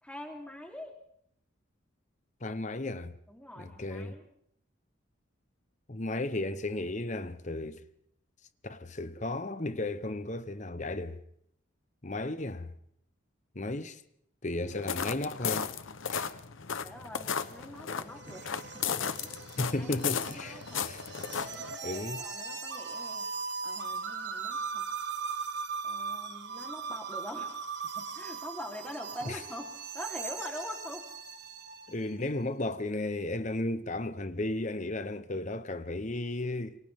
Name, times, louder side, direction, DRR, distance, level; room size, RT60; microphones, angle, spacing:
voice 1, 0.0-1.0 3.3-4.2 16.8-19.3 19.8-20.9 21.4-23.3 23.6-24.9 25.8-27.6 27.9-31.1, left 1 dB, 5° left, 3.5 m, -44 dB
voice 2, 2.4-3.1 3.6-4.2 5.9-7.8 8.6-11.2 12.0-12.7 13.5-14.0 14.4-15.7 16.1-16.3 19.6-21.0 21.8-22.2 29.2-29.4 31.9-36.8, left 2 dB, 35° left, 0.9 m, -34 dB
sound 1, 14.7-21.8, left 7 dB, 75° left, 1.0 m, -35 dB
sound 2, 17.4-32.0, right 5 dB, 55° right, 1.6 m, -39 dB
28.5 x 24.5 x 3.7 m
head